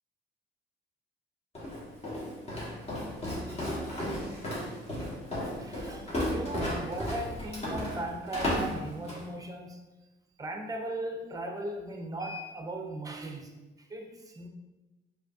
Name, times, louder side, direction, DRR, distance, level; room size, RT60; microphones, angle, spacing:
Walk footsteps, 1.5-9.3, left 1 dB, 30° left, 1.4 m, -34 dB
voice 1, 5.6-9.9 10.4-13.5 13.8-14.5, right 1 dB, 15° right, 3 dB, 0.6 m, -38 dB
4.8 x 2.7 x 2.7 m, 1.1 s
cardioid pair, 90°, 20 cm